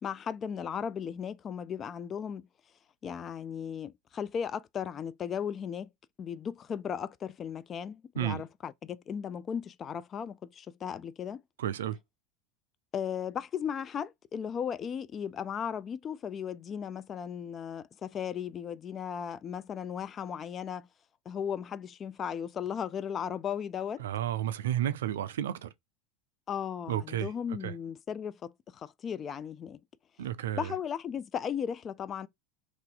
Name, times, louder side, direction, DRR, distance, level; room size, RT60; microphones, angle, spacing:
voice 1, 0.0-2.5 3.0-5.9 6.2-11.4 12.9-20.9 21.3-24.0 26.5-29.8 30.6-32.3, left 8 dB, 30° left, 0.3 m, -36 dB
voice 2, 11.6-12.0 24.0-25.7 26.9-27.3 27.6-27.7 30.2-30.7, right 11 dB, 70° right, 0.3 m, -32 dB
2.7 x 2.4 x 3.9 m
figure-of-eight pair, 80°, 0 cm